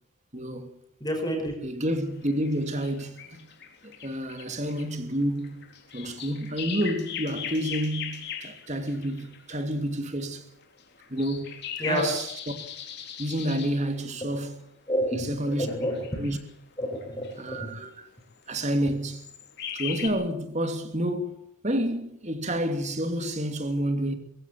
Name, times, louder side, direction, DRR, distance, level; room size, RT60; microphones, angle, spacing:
voice 1, 0.3-0.7 1.6-3.2 3.8-10.5 11.1-12.5 13.2-14.7 15.1-15.7 16.2-16.4 17.4-18.1 18.5-19.3 19.7-24.1, right 1 dB, 30° right, 2.9 m, -29 dB
voice 2, 1.0-1.5 11.8-12.1 14.9-16.2 16.8-17.7, equal, 20° left, 5.4 m, -29 dB
sound 1, 1.9-9.7 10.6-13.8 15.2-16.5 17.0-17.4 18.4-18.7 19.1-20.1, left 8 dB, 50° left, 3.5 m, -39 dB
23.0 x 15.5 x 8.7 m
head